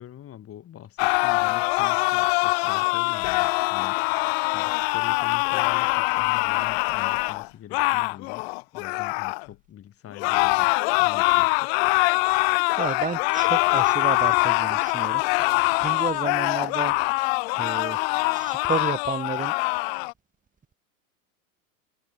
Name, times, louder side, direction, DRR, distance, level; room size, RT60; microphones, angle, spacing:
voice 1, 0.0-4.0 4.5-10.7 11.0-11.7, left 11 dB, 30° left, 7.4 m, -44 dB
sound 1, 1.0-9.5 10.2-20.1, left 30 dB, 50° left, 0.5 m, -23 dB
voice 2, 12.3-15.2 15.8-18.0 18.3-19.5, right 6 dB, 20° right, 4.7 m, -32 dB
hypercardioid pair, 110°, 42 cm